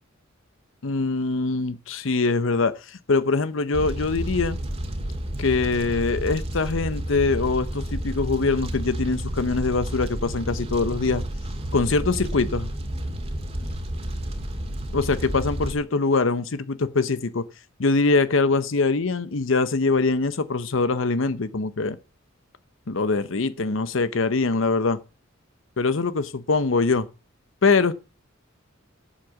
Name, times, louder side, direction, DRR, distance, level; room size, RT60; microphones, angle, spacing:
voice 1, 0.8-4.6 5.4-11.2 11.7-12.7 14.9-17.4 17.8-22.0 22.9-25.0 25.8-27.1 27.6-27.9, left 3 dB, 70° left, 0.8 m, -23 dB
Fire, 3.7-15.7, right 1 dB, 30° right, 2.1 m, -31 dB
8.4 x 7.9 x 7.0 m
head